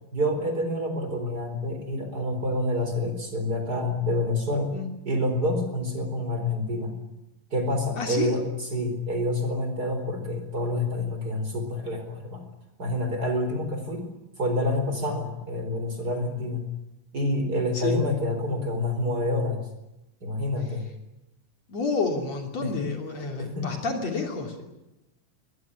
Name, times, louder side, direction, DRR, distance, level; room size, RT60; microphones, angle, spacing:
voice 1, 0.1-4.7 5.1-6.9 7.5-12.4 12.8-14.1 14.4-16.7 17.1-19.6 20.2-20.8 22.6-22.7 23.4-23.7, left 1 dB, 30° right, 6 dB, 4.6 m, -27 dB
voice 2, 8.0-8.4 17.7-18.0 21.7-24.6, left 4 dB, 55° left, 3 dB, 4.0 m, -29 dB
22.5 x 21.0 x 10.0 m, 0.93 s
omnidirectional pair, 3.7 m